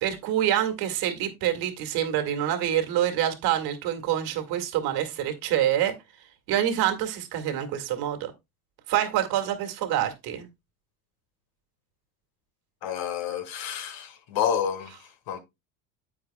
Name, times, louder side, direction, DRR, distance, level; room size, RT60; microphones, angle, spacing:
voice 1, 0.0-5.9 6.5-8.3 8.9-10.5, right 11 dB, 60° right, 2.2 m, -26 dB
voice 2, 12.8-15.0 15.3-15.4, left 8 dB, 55° left, 1.7 m, -29 dB
9.6 x 8.0 x 2.2 m
supercardioid pair, 100°, 43 cm